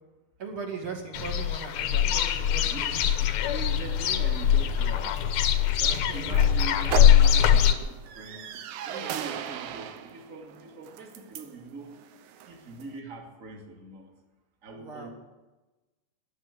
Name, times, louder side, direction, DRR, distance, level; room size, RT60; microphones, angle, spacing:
voice 1, 0.4-3.0 6.1-6.7 14.8-15.1, right 4 dB, 45° right, 1 dB, 2.4 m, -39 dB
sound 1, 1.1-7.7, left 9 dB, 75° left, 1.6 m, -22 dB
sound 2, 2.9-13.0, right 9 dB, 80° right, 1.7 m, -40 dB
voice 2, 3.4-5.2 5.8-8.5 8.8-12.0 12.5-14.1 14.6-15.1, right 3 dB, 25° right, 0 dB, 2.1 m, -42 dB
13.5 x 10.5 x 8.3 m, 1.1 s
omnidirectional pair, 4.3 m